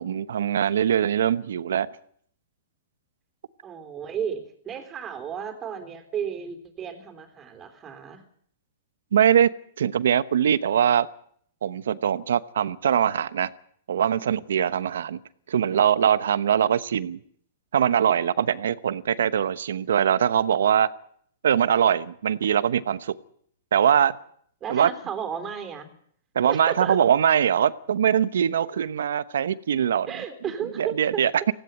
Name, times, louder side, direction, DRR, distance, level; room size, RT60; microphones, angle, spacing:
voice 1, 0.0-1.9 9.1-9.5 9.8-11.1 11.6-13.5 13.9-15.2 15.5-17.2 17.7-20.9 21.4-23.2 23.7-24.1 24.7-24.9 26.3-30.1 30.8-31.5, right 9 dB, 80° right, 16 dB, 1.0 m, -22 dB
voice 2, 3.6-8.2 24.6-25.9 26.5-27.0 30.1-31.2, right 8 dB, 25° right, 8 dB, 3.6 m, -33 dB
17.5 x 16.5 x 9.0 m, 0.63 s
hypercardioid pair, 130°, 0 cm